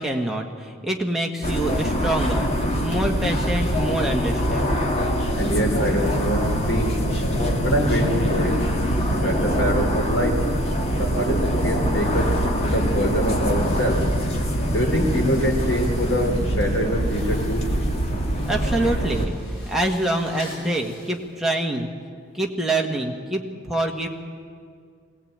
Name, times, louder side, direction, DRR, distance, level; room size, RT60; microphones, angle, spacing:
voice 1, 0.0-4.8 18.4-21.9 22.3-24.1, right 1 dB, ahead, 0 dB, 1.5 m, -26 dB
sound 1, 1.4-19.3, equal, 30° left, 2.2 m, -23 dB
voice 2, 5.3-7.0 7.6-8.6 9.2-10.4 11.0-12.3 12.6-14.0 14.7-17.7, equal, 75° left, 2 dB, 3.4 m, -24 dB
sound 2, 12.0-21.3, equal, 60° left, 6.9 m, -43 dB
20.5 x 17.5 x 8.8 m, 2.1 s
head